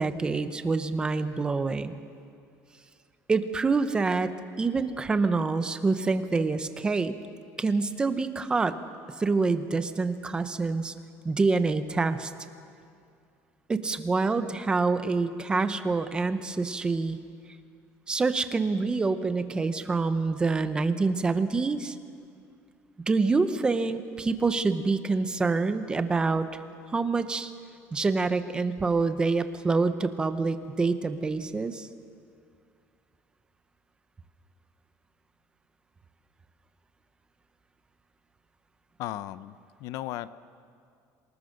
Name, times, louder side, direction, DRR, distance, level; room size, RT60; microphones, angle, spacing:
voice 1, 0.0-1.9 3.3-4.3 4.6-7.2 7.6-8.8 9.2-10.9 11.2-12.3 13.7-17.2 18.1-21.9 23.1-26.5 26.9-27.5 27.9-31.9, right 4 dB, 15° right, 10 dB, 0.8 m, -26 dB
voice 2, 39.0-40.3, left 14 dB, 55° left, 15 dB, 0.6 m, -36 dB
27.5 x 19.5 x 6.5 m, 2.3 s
cardioid pair, 175°, 6 cm